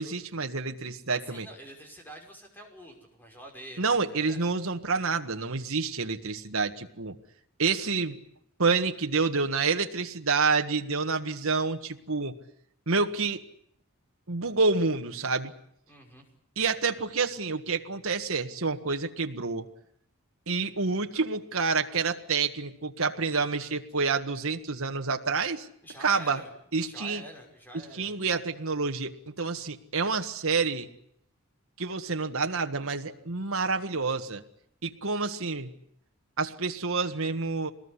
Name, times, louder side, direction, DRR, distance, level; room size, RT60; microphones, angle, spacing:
voice 1, 0.0-1.5 3.8-7.2 7.6-8.2 8.6-12.3 12.9-13.4 14.3-15.5 16.6-19.7 20.5-25.7 26.0-26.4 26.7-27.2 28.0-30.9 31.8-34.4 34.8-35.7 36.4-37.7, right 4 dB, 70° right, 5 dB, 1.6 m, -28 dB
voice 2, 1.1-4.4 15.9-16.3 25.8-26.5 26.8-28.2, right 1 dB, 10° left, 2 dB, 5.7 m, -46 dB
23.5 x 20.0 x 9.8 m, 0.69 s
head